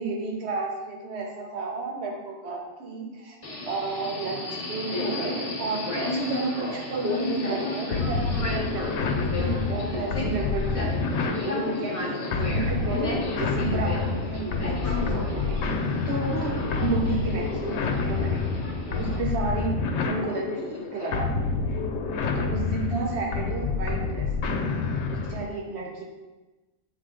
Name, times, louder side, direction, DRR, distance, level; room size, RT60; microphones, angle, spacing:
voice 1, 0.0-3.4 3.7-10.9 11.4-15.6 16.1-18.4 18.9-21.8 22.3-24.6 25.1-26.0, right 3 dB, 70° right, 0 dB, 1.2 m, -32 dB
Subway metro underground, 3.4-19.2, left 1 dB, 30° left, 1.0 m, -33 dB
sound 1, 7.9-25.5, left 4 dB, 85° left, 0.9 m, -28 dB
7.9 x 3.3 x 3.8 m, 1.1 s
omnidirectional pair, 1.1 m